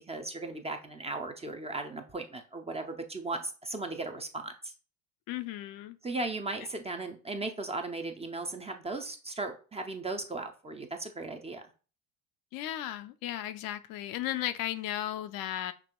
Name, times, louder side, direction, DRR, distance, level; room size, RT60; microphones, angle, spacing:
voice 1, 0.1-4.7 6.0-11.6, right 2 dB, 15° right, 5 dB, 0.5 m, -37 dB
voice 2, 5.3-6.0 6.6-6.7 12.5-15.7, left 13 dB, 55° left, 10 dB, 0.5 m, -35 dB
6.1 x 2.9 x 2.2 m, 0.37 s
hypercardioid pair, 75°, 43 cm